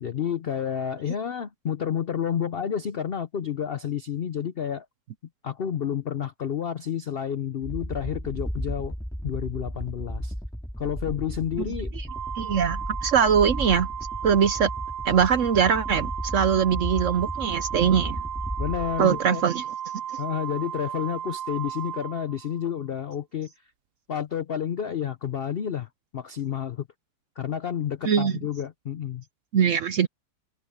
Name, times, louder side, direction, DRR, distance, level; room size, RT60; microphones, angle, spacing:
voice 1, 0.0-4.9 5.4-8.9 9.2-10.3 10.8-11.9 18.6-19.4 20.2-23.5 24.1-26.9 27.4-29.2, left 8 dB, 75° left, 0.5 m, -30 dB
sound 1, 7.6-19.2, equal, ahead, 2.4 m, -34 dB
Organ, 12.1-22.8, right 9 dB, 90° right, 0.5 m, -35 dB
voice 2, 12.4-13.9 14.2-14.7 15.0-18.2 19.0-19.6 28.0-28.3 29.5-30.1, right 7 dB, 60° right, 0.8 m, -22 dB
omnidirectional pair, 1.9 m